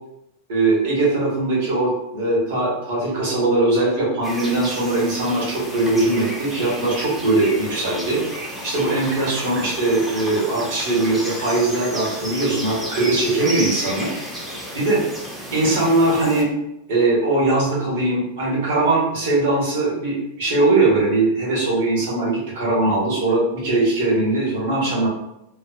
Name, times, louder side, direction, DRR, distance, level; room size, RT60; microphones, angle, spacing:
voice 1, 0.5-8.2 8.6-14.1 14.7-15.0 15.5-16.5 16.9-25.1, right 2 dB, 60° right, -5 dB, 1.3 m, -20 dB
sound 1, 4.2-16.4, equal, 10° right, 0.7 m, -32 dB
3.0 x 2.1 x 2.4 m, 0.86 s
figure-of-eight pair, 90°, 0 cm